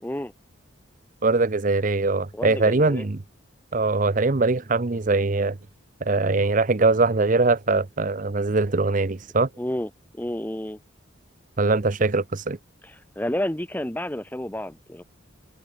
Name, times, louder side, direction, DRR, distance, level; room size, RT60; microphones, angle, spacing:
voice 1, 0.0-0.3 2.3-3.1 9.6-10.8 12.8-15.0, left 1 dB, 10° left, 1.0 m, -30 dB
voice 2, 1.2-3.2 3.7-5.6 6.0-9.5 11.6-12.6, right 3 dB, 40° right, 0.7 m, -22 dB
head